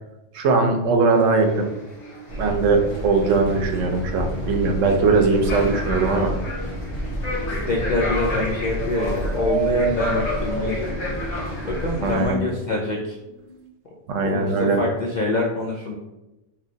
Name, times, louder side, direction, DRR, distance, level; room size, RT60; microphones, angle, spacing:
voice 1, 0.3-1.7 2.4-6.3 12.0-12.4 14.1-14.8, right 4 dB, 85° right, 4 dB, 1.0 m, -20 dB
sound 1, 1.1-12.1, left 2 dB, 70° left, 1.2 m, -34 dB
sound 2, 1.6-13.0 13.3-13.7, right 5 dB, 60° right, 0.4 m, -34 dB
sound 3, 2.3-12.3, equal, 90° left, 1.4 m, -30 dB
voice 2, 7.5-13.2 14.2-15.9, left 2 dB, 50° left, -3 dB, 0.6 m, -26 dB
3.3 x 3.0 x 3.8 m, 0.96 s
omnidirectional pair, 1.3 m